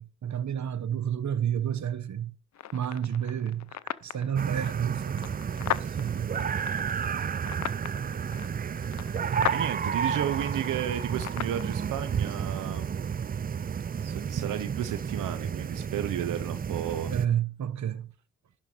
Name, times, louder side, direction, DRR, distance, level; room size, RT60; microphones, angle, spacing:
voice 1, 0.0-2.3 2.7-5.3 5.5-6.5 9.3-9.5 17.1-18.1, right 9 dB, 65° right, 1.1 m, -30 dB
sound 1, 2.5-11.6, left 11 dB, 65° left, 0.6 m, -38 dB
sound 2, 4.4-17.3, right 7 dB, 30° right, 0.4 m, -31 dB
voice 2, 9.0-12.9 14.0-17.1, right 11 dB, 90° right, 0.8 m, -33 dB
11.5 x 4.5 x 5.3 m
supercardioid pair, 40°, 31 cm